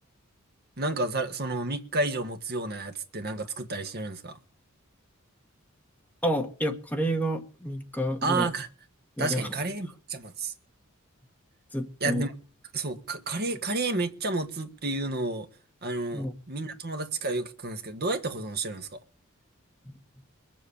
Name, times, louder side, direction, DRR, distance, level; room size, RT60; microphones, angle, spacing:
voice 1, 0.8-4.4 8.2-8.7 9.2-10.5 12.0-12.3 12.7-15.5 15.8-19.0, right 2 dB, 50° right, 1.6 m, -31 dB
voice 2, 6.2-8.5 9.2-9.4 11.7-12.3 16.1-16.3 19.9-20.0, equal, 10° left, 1.8 m, -29 dB
21.0 x 7.6 x 8.6 m
head